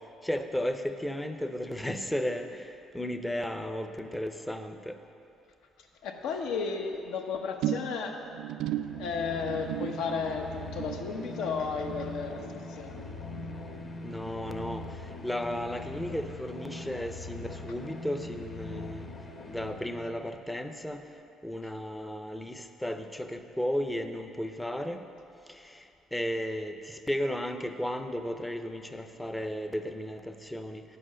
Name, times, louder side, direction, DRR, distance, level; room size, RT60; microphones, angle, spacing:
voice 1, 0.2-2.6 2.9-5.0 14.0-14.9 15.2-19.1 19.5-21.0 21.4-25.0 26.1-30.8, equal, 5° left, 7 dB, 0.5 m, -34 dB
voice 2, 6.0-8.2 9.0-13.0, left 5 dB, 80° left, 3 dB, 1.0 m, -33 dB
sound 1, 7.6-14.2 14.5-14.9 15.2-15.3, right 12 dB, 75° right, 0.3 m, -38 dB
sound 2, 8.7-20.4, left 2 dB, 30° left, 0.8 m, -42 dB
9.5 x 7.8 x 6.2 m, 2.7 s
cardioid pair, 150°, 0 cm